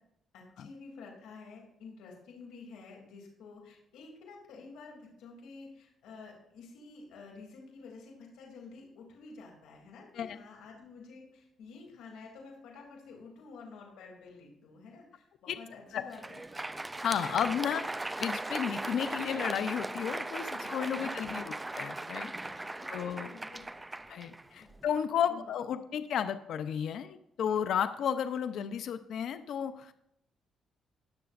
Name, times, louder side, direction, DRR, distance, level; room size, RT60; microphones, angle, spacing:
voice 1, 0.3-16.4 17.3-17.5 20.9-21.1 22.8-23.6 24.6-24.7 25.3-25.5, left 4 dB, 90° left, 0 dB, 2.9 m, -50 dB
Crowd, 16.0-25.0, right 2 dB, 15° right, 0.4 m, -38 dB
voice 2, 17.0-17.8 18.2-22.6 22.9-23.3 24.1-29.9, left 8 dB, 70° left, 11 dB, 0.6 m, -33 dB
19.5 x 6.8 x 2.6 m, 0.78 s
cardioid pair, 90°, 0 cm